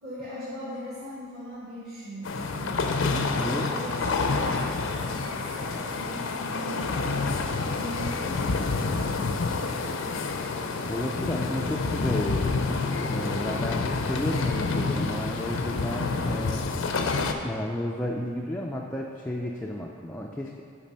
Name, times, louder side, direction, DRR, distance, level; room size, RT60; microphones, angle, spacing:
voice 1, 0.0-2.8 3.3-4.6 4.9-7.2 7.7-10.4, equal, 45° right, -9 dB, 1.6 m, -40 dB
sound 1, 2.2-17.3, left 3 dB, 60° left, 0.5 m, -28 dB
voice 2, 3.1-3.7 10.9-12.5 13.0-16.7 17.4-20.6, left 1 dB, 5° left, -2 dB, 0.3 m, -32 dB
7.2 x 5.2 x 5.4 m, 2.3 s
head